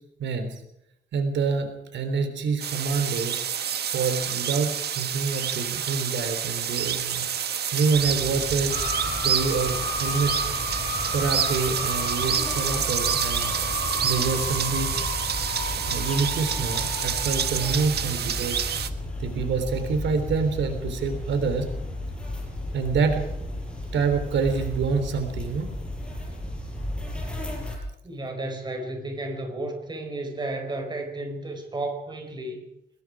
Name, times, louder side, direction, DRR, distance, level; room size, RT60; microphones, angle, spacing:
voice 1, 0.2-0.6 1.1-3.4 3.9-7.3 7.7-10.5 11.1-13.5 14.0-15.0 15.7-18.6 19.2-21.7 22.7-23.2 23.9-25.7, right 5 dB, 85° right, 7 dB, 3.6 m, -27 dB
sound 1, 2.6-18.9, right 8 dB, 65° right, 1.5 m, -28 dB
sound 2, 7.9-27.8, left 1 dB, 5° left, 6.7 m, -34 dB
sound 3, 8.7-18.3 18.6-19.3 19.6-19.8, left 2 dB, 40° left, 4.4 m, -33 dB
voice 2, 28.0-32.6, right 2 dB, 25° right, 4 dB, 4.8 m, -33 dB
24.5 x 21.5 x 4.9 m, 0.79 s
wide cardioid pair, 165°, 18 cm